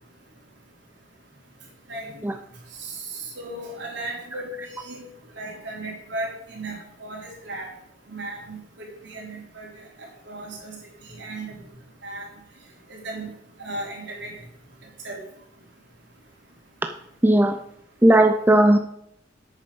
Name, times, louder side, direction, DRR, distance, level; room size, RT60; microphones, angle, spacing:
voice 1, 2.8-5.0 5.4-6.7 7.0-7.7 8.1-9.7 10.3-10.8 11.2-11.6 12.0-12.3 12.9-13.3 13.6-14.3 15.0-15.2, right 2 dB, 65° right, -2 dB, 3.9 m, -35 dB
voice 2, 17.2-17.6 18.0-18.8, right 1 dB, 10° right, 6 dB, 0.5 m, -16 dB
9.2 x 6.6 x 7.0 m, 0.74 s
head